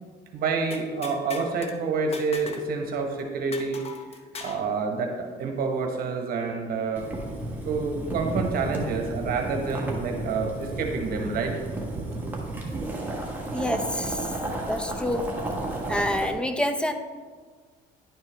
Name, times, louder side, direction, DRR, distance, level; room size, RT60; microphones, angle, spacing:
voice 1, 0.3-3.8 4.4-7.1 7.6-11.6 12.0-12.3, right 4 dB, 60° right, 3 dB, 1.0 m, -28 dB
sound 1, 0.7-1.7 2.1-2.7 3.0-3.1 3.5-4.7, left 4 dB, 35° left, 0.8 m, -38 dB
Boiling, 7.0-16.3, right 2 dB, 10° right, 1.3 m, -33 dB
voice 2, 13.5-14.2 14.7-15.3 15.9-16.9, left 1 dB, 5° left, 7 dB, 0.5 m, -27 dB
10.5 x 4.5 x 3.3 m, 1.5 s
cardioid pair, 110°, 17 cm